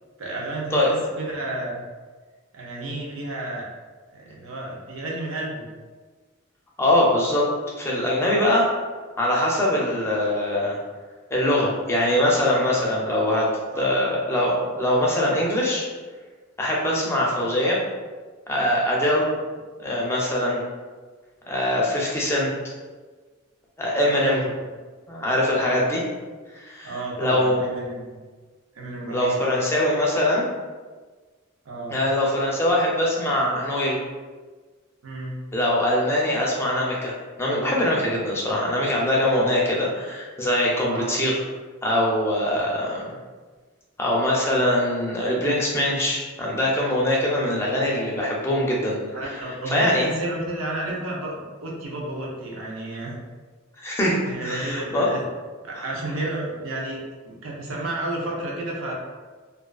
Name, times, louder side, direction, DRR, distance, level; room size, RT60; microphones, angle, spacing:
voice 1, 0.2-1.8 2.5-3.7 4.1-5.6 13.7-13.9 23.9-24.4 25.5-25.8 26.8-28.2 28.7-29.4 31.7-32.0 35.0-35.4 40.9-41.2 49.1-53.2 54.3-55.2 55.6-58.9, right 2 dB, 85° right, -2 dB, 0.6 m, -31 dB
voice 2, 6.8-7.5 7.8-8.7 9.2-10.8 11.3-13.5 13.8-15.9 16.6-17.8 18.5-19.3 19.8-20.7 21.5-22.5 23.8-24.4 25.1-26.0 26.5-27.8 29.1-30.5 31.9-34.0 35.5-41.4 41.8-43.1 44.0-49.0 49.7-50.0 53.8-55.1 55.8-55.9, left 1 dB, 15° left, -4 dB, 0.4 m, -22 dB
2.3 x 2.3 x 2.3 m, 1.4 s
head